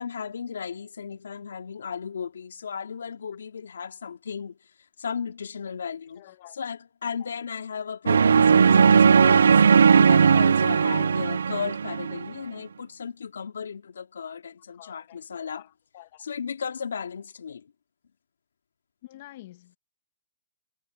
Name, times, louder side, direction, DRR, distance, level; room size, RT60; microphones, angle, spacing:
voice 1, 0.0-4.6 5.0-6.3 6.5-15.6 16.2-17.6, left 6 dB, 80° left, 2.9 m, -35 dB
voice 2, 6.2-6.6 7.2-7.3 14.7-16.3 19.0-19.8, left 16 dB, 50° left, 1.8 m, -49 dB
sound 1, 8.1-12.2, right 6 dB, 85° right, 0.6 m, -18 dB
hypercardioid pair, 135°, 0 cm